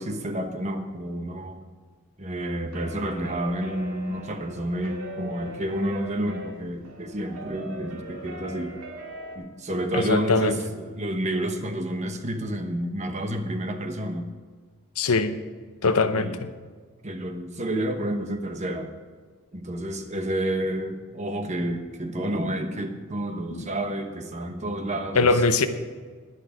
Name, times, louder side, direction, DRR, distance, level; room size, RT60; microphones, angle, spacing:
voice 1, 0.0-1.6 2.2-8.8 9.3-14.2 16.1-16.3 17.0-18.9 19.5-25.3, right 1 dB, 30° right, 1.1 m, -30 dB
sound 1, 2.4-9.4, right 1 dB, 75° right, 2.3 m, -40 dB
voice 2, 9.9-10.6 15.0-15.3 15.8-16.5 23.5-23.7 25.1-25.7, left 3 dB, 85° left, 0.9 m, -22 dB
11.5 x 11.0 x 5.0 m
head